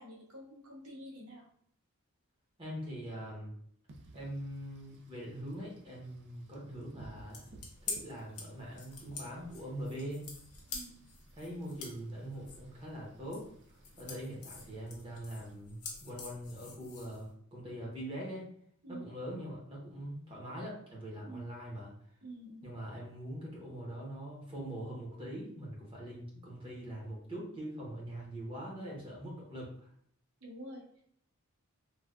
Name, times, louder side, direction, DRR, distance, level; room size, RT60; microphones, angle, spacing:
voice 1, 0.0-1.5 10.7-11.1 18.8-19.1 21.2-21.5 22.2-22.7 30.4-30.9, right 1 dB, 75° right, -2 dB, 0.9 m, -48 dB
voice 2, 2.6-3.5 4.1-7.4 7.8-10.3 11.4-13.4 14.0-18.5 18.9-21.9 22.6-29.7, equal, 25° right, -4 dB, 0.8 m, -42 dB
Wind / Rain, 3.9-15.5, right 2 dB, 50° right, 0.4 m, -59 dB
sound 1, 7.1-17.3, left 4 dB, 75° left, 0.7 m, -47 dB
3.2 x 2.2 x 2.3 m, 0.66 s
head